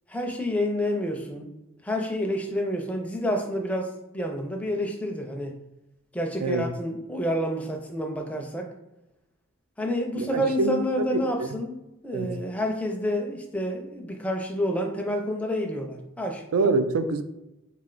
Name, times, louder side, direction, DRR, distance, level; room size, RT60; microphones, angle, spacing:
voice 1, 0.1-1.5 1.8-5.5 6.1-8.7 9.8-16.4, equal, 5° left, 2 dB, 0.5 m, -29 dB
voice 2, 10.1-11.5 12.1-12.3 16.5-17.2, right 3 dB, 80° right, 9 dB, 0.4 m, -26 dB
3.6 x 3.3 x 3.8 m, 0.93 s
head